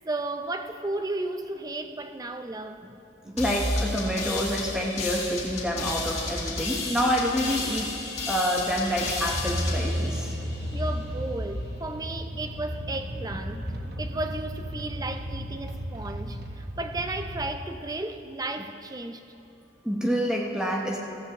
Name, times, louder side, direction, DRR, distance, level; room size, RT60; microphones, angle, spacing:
voice 1, 0.1-3.4 10.7-13.7 14.0-19.2, right 2 dB, 20° right, 0.5 m, -34 dB
sound 1, 3.4-10.9, left 2 dB, 35° left, 2.0 m, -32 dB
voice 2, 3.4-8.0 8.3-10.3 19.8-21.0, equal, 5° right, 0.9 m, -27 dB
sound 2, 9.3-17.6, equal, 50° right, 1.1 m, -33 dB
15.5 x 15.5 x 2.9 m
head